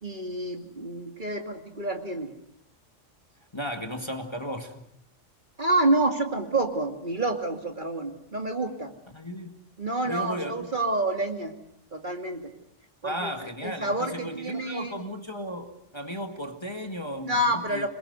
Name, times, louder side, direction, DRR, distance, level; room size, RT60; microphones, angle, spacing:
voice 1, 0.0-2.3 5.6-8.9 9.8-11.6 11.9-12.5 13.0-13.3 13.6-15.1 17.2-17.9, right 2 dB, 40° right, 4 dB, 2.6 m, -28 dB
voice 2, 3.5-4.8 9.1-9.5 10.1-10.7 13.0-17.9, equal, 20° left, 4 dB, 2.2 m, -35 dB
27.0 x 22.0 x 8.1 m, 0.75 s
omnidirectional pair, 1.3 m